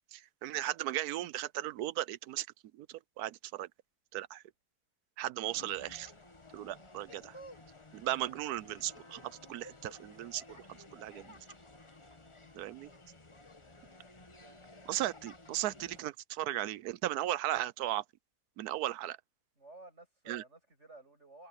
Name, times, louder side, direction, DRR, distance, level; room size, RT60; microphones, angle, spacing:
voice 1, 0.1-2.5 2.8-3.7 4.1-4.4 5.2-6.1 6.5-7.3 7.9-10.4 10.9-11.3 12.5-12.9 14.9-18.0 18.6-19.2 20.3-20.4, right 14 dB, 75° right, 1.1 m, -36 dB
sound 1, 5.5-16.0, left 2 dB, 20° left, 1.2 m, -54 dB
voice 2, 14.4-14.7 19.6-21.5, right 2 dB, 45° right, 8.2 m, -54 dB
open air
omnidirectional pair, 1.7 m